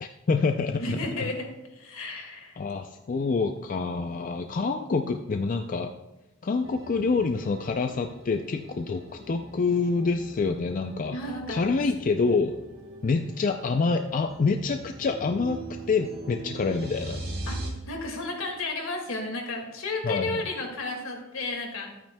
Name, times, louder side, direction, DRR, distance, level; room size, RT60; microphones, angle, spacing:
voice 1, 0.0-1.0 2.6-5.9 6.4-11.2 11.5-12.5 13.0-15.6 15.9-17.2 20.0-20.4, left 4 dB, 40° left, 6 dB, 0.4 m, -27 dB
voice 2, 0.8-2.6 11.1-11.6 17.5-21.9, left 2 dB, 75° left, 1 dB, 2.0 m, -33 dB
sound 1, 6.6-17.7, right 2 dB, 50° right, 2.0 m, -41 dB
13.0 x 8.7 x 2.2 m, 1.0 s
head